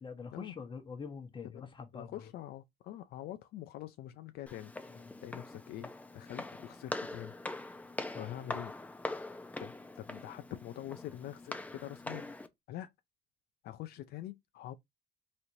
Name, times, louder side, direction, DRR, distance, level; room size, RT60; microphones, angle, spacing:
voice 1, 0.0-2.3 4.9-5.1 8.1-8.3, left 5 dB, 30° left, 1.0 m, -45 dB
voice 2, 1.5-4.7 5.2-7.3 8.2-8.7 9.6-12.3 12.7-12.9 13.6-14.7, left 13 dB, 70° left, 0.4 m, -45 dB
Walk footsteps, 4.5-12.5, left 2 dB, 10° left, 0.6 m, -43 dB
4.2 x 3.1 x 2.6 m
cardioid pair, 110°, 17 cm